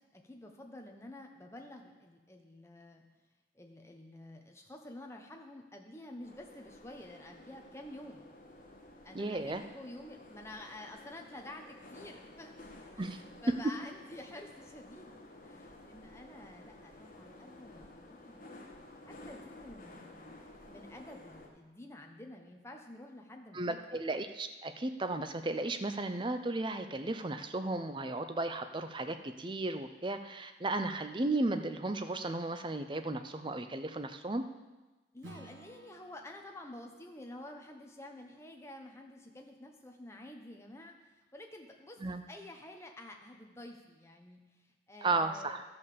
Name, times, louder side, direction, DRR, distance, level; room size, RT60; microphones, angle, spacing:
voice 1, 0.1-3.0 3.5-8.2 9.0-12.6 12.9-18.6 19.1-20.3 20.7-23.8 35.1-40.9 41.3-45.6, left 1 dB, 15° left, 2 dB, 1.0 m, -50 dB
sound 1, 6.2-21.5, left 2 dB, 45° left, 1.4 m, -53 dB
voice 2, 9.1-9.6 13.0-13.2 23.5-34.4 42.0-42.2 45.0-45.6, right 2 dB, 25° right, 8 dB, 0.5 m, -35 dB
Acoustic guitar / Strum, 35.2-40.0, right 1 dB, 90° right, 1.4 m, -57 dB
12.5 x 5.5 x 6.8 m, 1.2 s
head